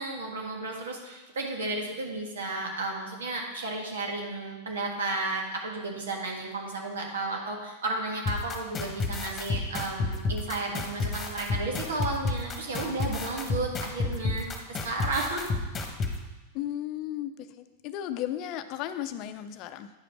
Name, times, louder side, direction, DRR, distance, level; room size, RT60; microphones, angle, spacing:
voice 1, 0.0-15.4, right 2 dB, 75° right, 1 dB, 1.6 m, -33 dB
sound 1, 8.3-16.1, left 3 dB, 25° left, 1.3 m, -30 dB
voice 2, 16.5-19.9, left 11 dB, 50° left, 10 dB, 0.6 m, -35 dB
9.4 x 5.1 x 4.6 m, 1.1 s
hypercardioid pair, 95°, 0 cm